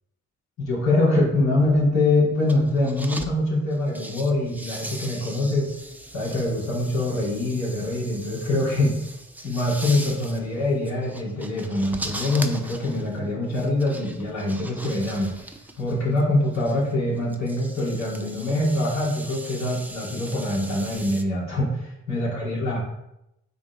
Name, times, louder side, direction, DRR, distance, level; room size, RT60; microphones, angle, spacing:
voice 1, 0.6-5.7 6.1-8.9 9.4-15.3 15.8-22.8, left 2 dB, 65° left, -5 dB, 2.8 m, -24 dB
sound 1, 2.4-3.3 3.7-21.2, right 1 dB, 5° right, 0.7 m, -39 dB
9.4 x 3.9 x 3.5 m, 0.85 s
cardioid pair, 90°, 30 cm